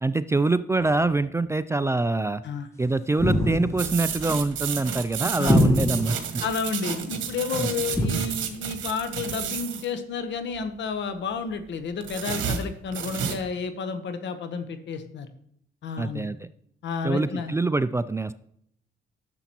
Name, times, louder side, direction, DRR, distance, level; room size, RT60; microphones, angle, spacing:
voice 1, 0.0-2.4 2.8-6.4 7.6-7.7 16.0-16.5 17.0-18.3, right 3 dB, 15° right, 13 dB, 0.3 m, -25 dB
sound 1, 3.2-4.0 5.5-6.3 7.9-8.1, left 1 dB, 15° left, 1.2 m, -22 dB
sound 2, 3.8-9.9 12.0-13.4, right 8 dB, 75° right, 1.3 m, -31 dB
voice 2, 6.4-15.3 15.8-16.2 16.8-17.5, left 5 dB, 65° left, 9 dB, 1.1 m, -31 dB
10.5 x 7.0 x 3.0 m, 0.69 s
cardioid pair, 90°, 20 cm